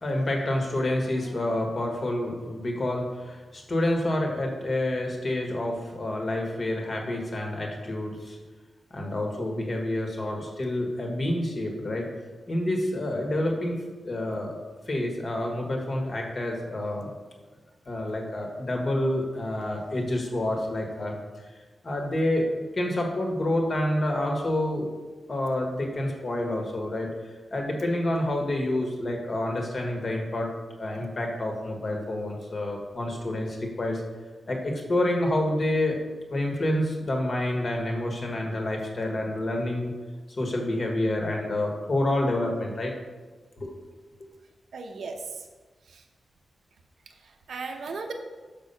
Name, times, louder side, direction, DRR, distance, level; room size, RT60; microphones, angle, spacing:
voice 1, 0.0-8.4 8.9-12.1 12.5-13.8 14.0-14.6 14.9-17.1 17.8-21.1 21.8-24.9 25.3-27.1 27.5-30.5 30.8-34.0 34.5-36.0 36.3-39.9 40.4-42.9 43.6-43.8, left 1 dB, 40° left, 1 dB, 1.5 m, -28 dB
voice 2, 44.7-45.5 45.9-46.0 47.2-48.1, right 4 dB, 75° right, 4 dB, 0.7 m, -36 dB
6.5 x 5.4 x 5.5 m, 1.3 s
wide cardioid pair, 120°, 0 cm